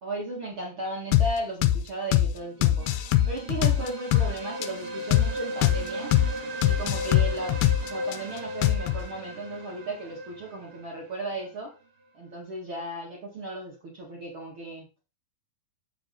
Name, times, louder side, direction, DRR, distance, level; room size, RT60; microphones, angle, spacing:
voice 1, 0.0-2.9 3.3-6.1 6.6-11.7 12.1-14.9, right 1 dB, 45° right, -2 dB, 1.6 m, -35 dB
sound 1, 1.1-1.3 1.6-1.8 2.1-2.3 2.6-4.3 4.6-4.7 5.1-5.3 5.6-5.8 6.1-6.3 6.6-8.2 8.6-9.0, left 12 dB, 85° left, 2.3 m, -22 dB
sound 2, 2.7-11.5, equal, 80° right, 1.2 m, -37 dB
7.5 x 6.6 x 3.9 m, 0.30 s
omnidirectional pair, 5.2 m